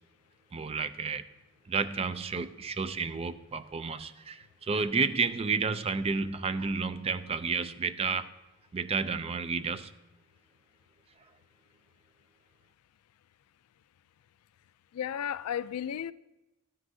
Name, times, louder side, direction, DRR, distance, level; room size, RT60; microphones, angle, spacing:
voice 1, 0.5-1.2 1.7-8.3 8.7-9.9, right 4 dB, 25° right, 0.4 m, -31 dB
voice 2, 14.9-16.1, left 9 dB, 75° left, 0.3 m, -33 dB
12.5 x 9.6 x 2.7 m
head